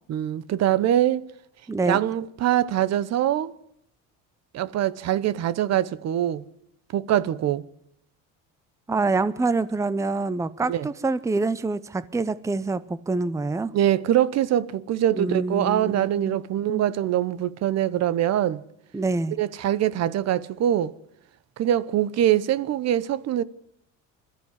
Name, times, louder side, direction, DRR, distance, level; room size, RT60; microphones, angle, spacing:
voice 1, 0.1-1.3 1.9-3.5 4.5-6.4 6.9-7.6 10.6-10.9 13.7-18.6 19.4-20.9 21.6-23.4, right 11 dB, 50° right, 1.0 m, -23 dB
voice 2, 1.7-2.0 8.9-13.7 15.1-16.4 16.7-16.8 18.9-19.3, right 3 dB, 10° right, 0.7 m, -26 dB
21.0 x 13.5 x 9.8 m
cardioid pair, 110°, 33 cm